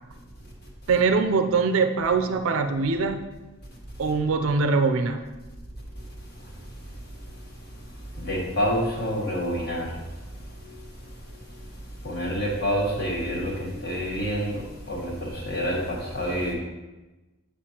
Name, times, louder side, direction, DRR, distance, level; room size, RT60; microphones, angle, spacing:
voice 1, 0.9-3.2 4.0-5.2, right 4 dB, 70° right, 7 dB, 0.4 m, -22 dB
voice 2, 8.2-9.9 12.0-14.6 14.9-16.5, equal, 50° left, -3 dB, 1.6 m, -27 dB
8.6 x 5.2 x 2.9 m, 1.1 s
head